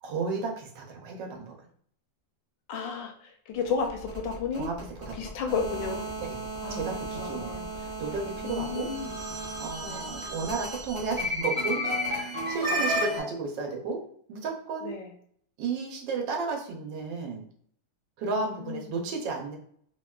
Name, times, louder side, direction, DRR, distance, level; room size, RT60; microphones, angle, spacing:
voice 1, 0.0-1.5 4.6-4.8 5.1-5.3 6.2-6.4 6.7-8.9 9.4-14.0 14.3-15.0 15.6-17.4 18.2-19.6, right 4 dB, 85° right, 1 dB, 1.3 m, -33 dB
voice 2, 2.7-4.7 5.1-6.0 6.6-6.8 7.1-7.7 8.4-9.2 9.8-10.1 12.7-13.0 14.8-15.1 18.2-18.9, left 5 dB, 85° left, 4 dB, 1.3 m, -33 dB
sound 1, 3.6-13.2, equal, 40° right, 0.4 m, -33 dB
3.4 x 2.2 x 2.2 m, 0.62 s
omnidirectional pair, 1.9 m